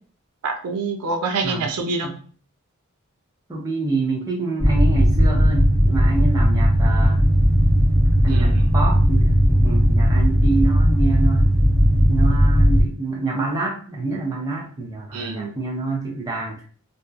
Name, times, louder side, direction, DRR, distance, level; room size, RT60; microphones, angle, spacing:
voice 1, 0.4-2.1 8.3-8.6 15.1-15.5, right 3 dB, 85° right, 0.4 m, -26 dB
voice 2, 3.5-7.2 8.2-11.5 12.1-16.6, right 3 dB, 15° right, 0.5 m, -27 dB
sound 1, 4.6-12.8, equal, 35° right, 1.1 m, -16 dB
2.6 x 2.1 x 2.3 m
head